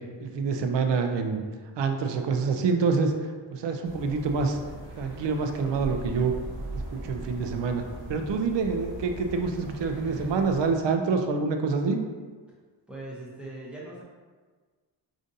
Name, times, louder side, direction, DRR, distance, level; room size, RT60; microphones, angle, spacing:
voice 1, 0.2-1.4 1.8-3.1 3.5-4.6 5.0-6.3 6.7-7.8 8.1-12.0, right 4 dB, 65° right, 5 dB, 0.5 m, -26 dB
sound 1, 3.8-10.7, right 1 dB, 25° right, 1.1 m, -40 dB
voice 2, 12.9-14.0, right 2 dB, ahead, -5 dB, 0.7 m, -40 dB
4.9 x 2.5 x 2.6 m, 1.4 s
wide cardioid pair, 145°, 47 cm